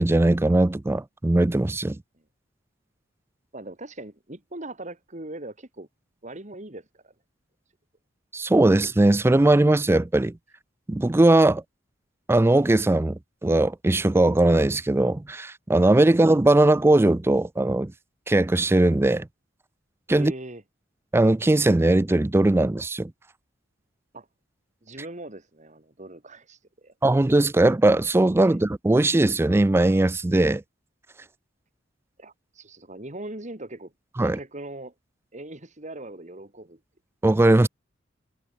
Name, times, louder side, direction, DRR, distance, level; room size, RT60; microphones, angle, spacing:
voice 1, 0.0-2.0 8.3-10.3 10.9-11.6 12.3-17.9 18.3-19.3 20.1-20.3 21.1-23.1 27.0-30.6 34.2-34.4 37.2-37.7, right 2 dB, 10° right, 0.3 m, -19 dB
voice 2, 3.5-5.9 6.2-7.1 20.1-20.6 24.1-24.3 24.8-26.9 28.4-28.6 32.2-34.9 35.3-36.8, right 2 dB, 40° right, 2.7 m, -40 dB
head